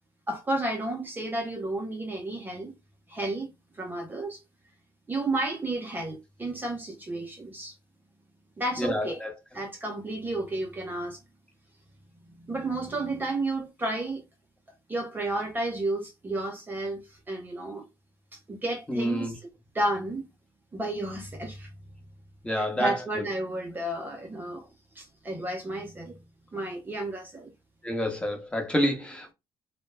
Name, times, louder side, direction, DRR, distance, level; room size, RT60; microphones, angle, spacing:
voice 1, 0.3-2.7 3.1-3.5 3.8-4.4 5.1-7.7 8.6-9.2 9.5-11.2 12.5-14.2 14.9-17.9 18.5-19.3 19.7-20.2 20.7-21.7 22.6-24.7 25.0-26.2 26.5-27.5, right 2 dB, 20° right, 0.6 m, -32 dB
voice 2, 8.8-9.4 18.9-19.3 22.4-23.3 27.8-29.3, equal, 10° left, 0.8 m, -28 dB
2.2 x 2.1 x 3.1 m
cardioid pair, 95°, 10 cm